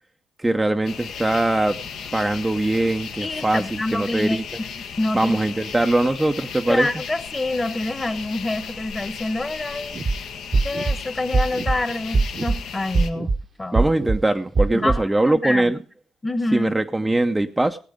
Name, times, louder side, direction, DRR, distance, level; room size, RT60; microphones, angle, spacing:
voice 1, 0.4-1.8 2.1-4.4 5.1-6.9 13.7-15.8 16.5-17.8, right 2 dB, 15° right, 0.7 m, -21 dB
sound 1, 0.8-13.1, left 7 dB, 75° left, 1.6 m, -36 dB
voice 2, 3.2-4.7 5.0-5.4 6.7-10.0 10.6-13.3 13.6-13.9 14.8-15.7 16.2-16.8, left 2 dB, 20° left, 1.3 m, -26 dB
sound 2, 9.9-10.1 10.5-11.0 11.3-11.8 12.1-12.6 12.9-13.4 13.7-14.2 14.6-15.0, right 3 dB, 35° right, 0.9 m, -21 dB
17.5 x 8.3 x 5.1 m
cardioid pair, 90°, 0 cm